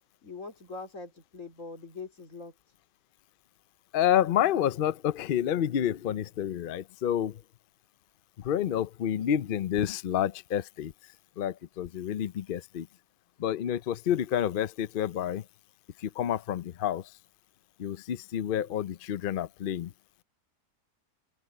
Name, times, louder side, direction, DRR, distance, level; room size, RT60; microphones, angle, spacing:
voice 1, 0.2-2.5, left 4 dB, 50° left, 3.5 m, -42 dB
voice 2, 3.9-7.4 8.4-10.9 11.4-12.9 13.4-15.4 16.0-17.1 17.8-19.9, left 10 dB, 75° left, 0.5 m, -29 dB
open air
omnidirectional pair, 1.7 m